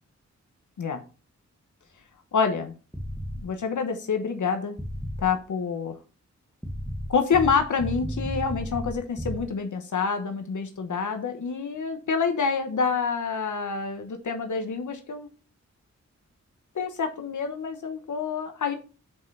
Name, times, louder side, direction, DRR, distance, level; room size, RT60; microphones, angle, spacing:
voice 1, 2.3-2.7 3.4-4.8 5.2-6.0 7.1-15.3 16.7-18.8, left 5 dB, 85° left, 6 dB, 1.1 m, -27 dB
sound 1, 2.9-3.4 4.8-5.3 6.6-9.4, right 1 dB, ahead, 1.3 m, -33 dB
7.0 x 5.3 x 5.5 m, 0.34 s
wide cardioid pair, 130°, 29 cm